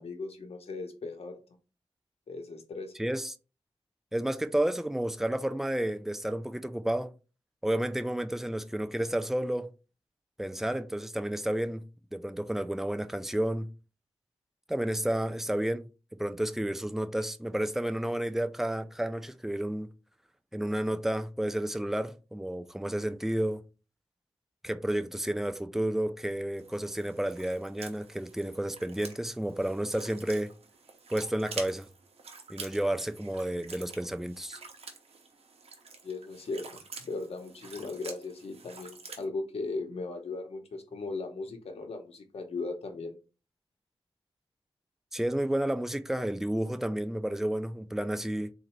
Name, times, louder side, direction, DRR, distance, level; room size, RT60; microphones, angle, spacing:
voice 1, 0.0-1.4 2.3-2.9 36.0-43.2, left 3 dB, 80° left, 0.9 m, -38 dB
voice 2, 3.0-3.3 4.1-7.1 7.6-9.7 10.4-11.8 12.1-13.7 14.7-19.9 20.5-23.6 24.6-30.5 31.1-31.9 32.5-34.6 45.1-48.5, right 1 dB, 5° right, 0.4 m, -31 dB
sound 1, 26.6-39.2, right 4 dB, 80° right, 0.8 m, -48 dB
3.9 x 2.6 x 4.4 m
wide cardioid pair, 95°, 10 cm